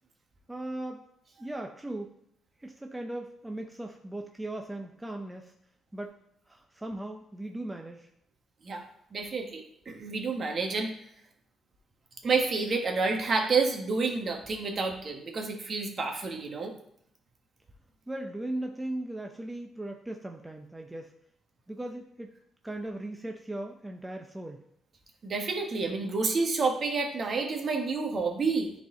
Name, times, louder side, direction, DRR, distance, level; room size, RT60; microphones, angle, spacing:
voice 1, 0.5-1.0 1.4-2.2 2.6-5.5 5.9-6.2 6.5-8.1 18.1-21.1 21.7-22.3 22.6-24.6, right 1 dB, 10° right, 3 dB, 0.6 m, -38 dB
voice 2, 9.1-10.9 12.2-16.7 25.2-28.7, right 4 dB, 45° right, 3 dB, 1.4 m, -29 dB
10.0 x 4.1 x 3.8 m, 0.72 s
cardioid pair, 90°, 0 cm